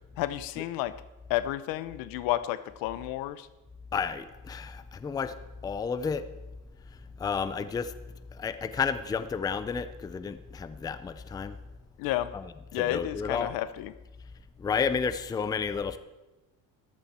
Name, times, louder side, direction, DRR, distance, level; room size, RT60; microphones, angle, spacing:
voice 1, 0.2-0.9 1.3-3.5 12.0-12.3 12.7-13.9, left 14 dB, 80° left, 14 dB, 0.8 m, -31 dB
voice 2, 3.9-5.3 5.6-6.2 7.2-7.9 8.4-11.6 12.3-12.4 12.8-13.5 14.6-16.0, left 6 dB, 10° left, 12 dB, 0.4 m, -31 dB
14.0 x 13.5 x 4.3 m, 1.1 s
cardioid pair, 160°, 34 cm